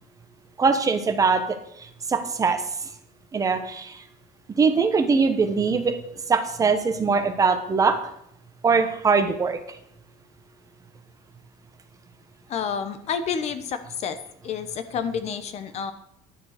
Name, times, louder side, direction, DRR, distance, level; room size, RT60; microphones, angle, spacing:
voice 1, 0.6-1.4 2.1-2.6 3.3-4.0 4.6-5.9 6.3-8.0 8.6-9.6, right 5 dB, 20° right, 7 dB, 1.1 m, -21 dB
voice 2, 12.5-14.2 14.4-15.9, left 7 dB, 45° left, 11 dB, 1.0 m, -29 dB
11.0 x 6.9 x 6.7 m, 0.74 s
cardioid pair, 150°, 15 cm